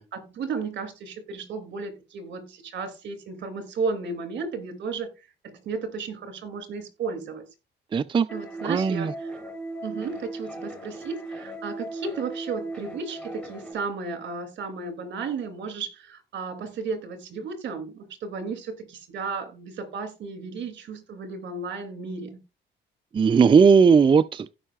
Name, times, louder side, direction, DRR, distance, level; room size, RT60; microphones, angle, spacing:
voice 1, 0.0-5.1 5.4-7.5 8.3-9.3 9.8-22.4, right 4 dB, 65° right, 2.5 m, -34 dB
voice 2, 7.9-8.3 8.6-9.1 23.1-24.5, right 6 dB, 25° right, 0.3 m, -17 dB
sound 1, 8.3-13.7, right 2 dB, 5° left, 3.7 m, -37 dB
16.0 x 5.4 x 2.4 m
cardioid pair, 90°, 20 cm